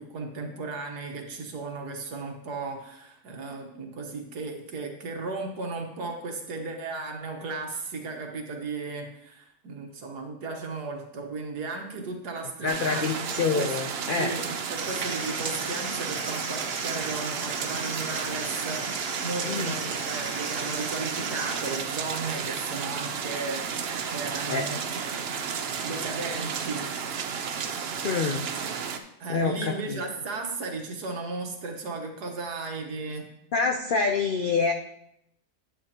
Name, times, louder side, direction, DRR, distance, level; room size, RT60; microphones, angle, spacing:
voice 1, 0.0-13.1 13.5-13.7 14.2-25.4 25.8-26.8 29.2-33.3, right 3 dB, 80° right, 2 dB, 1.8 m, -35 dB
voice 2, 12.6-14.3 19.4-19.8 24.5-24.7 28.0-28.5 29.3-30.0 33.5-34.7, left 4 dB, 85° left, 4 dB, 0.4 m, -26 dB
sound 1, 12.7-29.0, right 6 dB, 55° right, 0.7 m, -32 dB
sound 2, 14.8-21.8, right 3 dB, 40° right, 1.4 m, -37 dB
9.6 x 9.5 x 2.9 m, 0.77 s
omnidirectional pair, 1.7 m